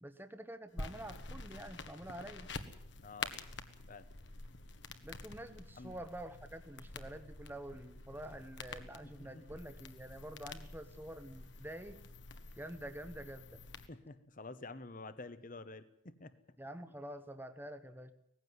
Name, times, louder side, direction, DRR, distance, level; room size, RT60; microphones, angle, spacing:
voice 1, 0.0-2.5 5.0-12.0 12.6-13.6 16.6-18.1, right 1 dB, 10° right, 9 dB, 1.0 m, -47 dB
sound 1, 0.8-13.9, left 3 dB, 60° left, 1.4 m, -48 dB
voice 2, 3.0-3.3 3.9-4.1 5.8-6.0 9.2-9.4 13.9-16.3, left 3 dB, 40° left, 13 dB, 1.0 m, -49 dB
18.5 x 15.5 x 9.4 m, 0.75 s
head